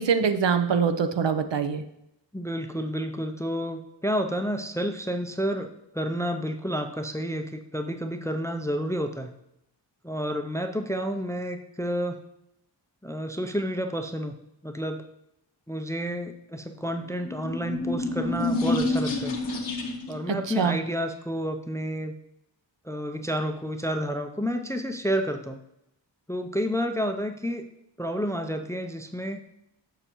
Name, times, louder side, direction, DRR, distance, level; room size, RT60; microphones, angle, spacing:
voice 1, 0.0-1.8 20.3-20.8, right 6 dB, 70° right, 9 dB, 0.6 m, -24 dB
voice 2, 2.3-5.7 5.9-9.3 10.0-12.2 13.0-14.3 14.6-15.0 15.7-19.3 20.1-22.1 22.8-25.6 26.3-27.7 28.0-29.4, equal, 5° left, 6 dB, 0.4 m, -30 dB
sound 1, 17.2-20.2, left 2 dB, 75° left, 1.1 m, -28 dB
6.6 x 6.6 x 3.0 m, 0.82 s
wide cardioid pair, 90°, 46 cm